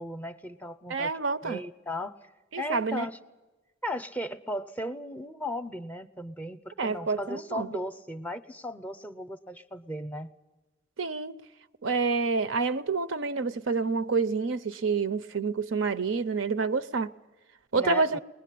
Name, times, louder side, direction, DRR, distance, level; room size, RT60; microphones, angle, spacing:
voice 1, 0.0-1.1 1.4-2.2 2.6-3.2 3.8-10.3 17.7-18.1, left 1 dB, 10° left, 0.6 m, -36 dB
voice 2, 0.9-1.6 2.5-3.1 6.8-7.7 11.0-11.3 11.8-17.1 17.7-18.2, right 4 dB, 75° right, 0.6 m, -28 dB
21.5 x 20.0 x 8.5 m
head